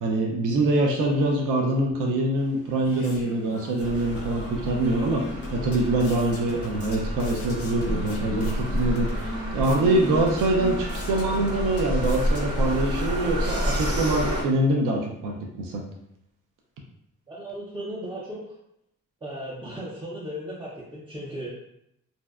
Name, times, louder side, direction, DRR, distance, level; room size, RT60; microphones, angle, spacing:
voice 1, 0.0-5.2 5.5-15.8, right 2 dB, 85° right, 0 dB, 0.5 m, -24 dB
sound 1, 2.4-12.9, left 2 dB, 50° left, 0.4 m, -40 dB
sound 2, 3.8-14.4, equal, 50° right, 0.7 m, -29 dB
voice 2, 17.3-18.4 19.2-21.6, right 1 dB, 15° right, -7 dB, 0.4 m, -36 dB
2.6 x 2.1 x 2.3 m, 0.78 s
cardioid pair, 125°, 31 cm